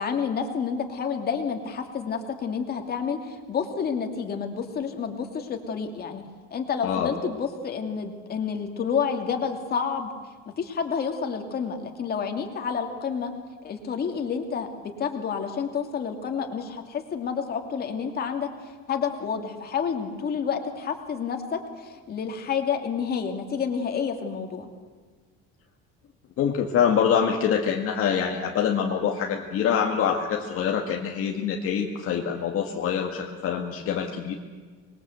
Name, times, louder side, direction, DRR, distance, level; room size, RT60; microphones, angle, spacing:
voice 1, 0.0-6.2 6.5-10.1 10.6-13.3 13.6-14.7 15.0-24.7, left 6 dB, 30° left, 4 dB, 2.7 m, -29 dB
voice 2, 6.8-7.2 26.4-34.3, left 7 dB, 45° left, 1 dB, 1.9 m, -25 dB
26.0 x 22.0 x 8.2 m, 1.5 s
cardioid pair, 170°, 30 cm